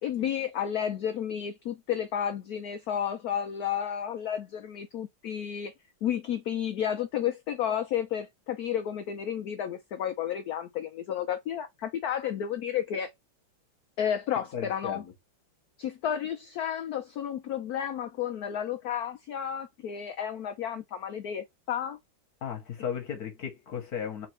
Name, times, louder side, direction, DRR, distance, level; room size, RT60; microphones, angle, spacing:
voice 1, 0.0-5.7 6.0-13.1 14.0-15.0 15.8-22.0, left 9 dB, 80° left, 0.8 m, -32 dB
voice 2, 14.5-15.1 22.4-24.3, left 7 dB, 55° left, 1.4 m, -35 dB
3.9 x 3.3 x 3.2 m
omnidirectional pair, 2.2 m